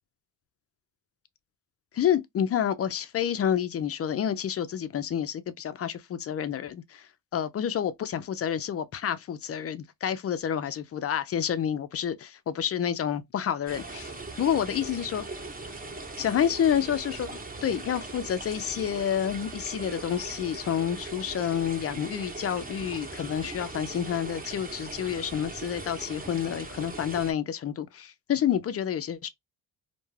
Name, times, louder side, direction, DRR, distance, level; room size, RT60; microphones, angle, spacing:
voice 1, 1.9-14.1 14.4-15.3 16.2-17.3 17.6-29.3, left 9 dB, 35° left, 0.4 m, -29 dB
sound 1, 13.7-27.3, right 2 dB, 20° right, 0.8 m, -40 dB
2.3 x 2.2 x 3.1 m
cardioid pair, 80°, 40 cm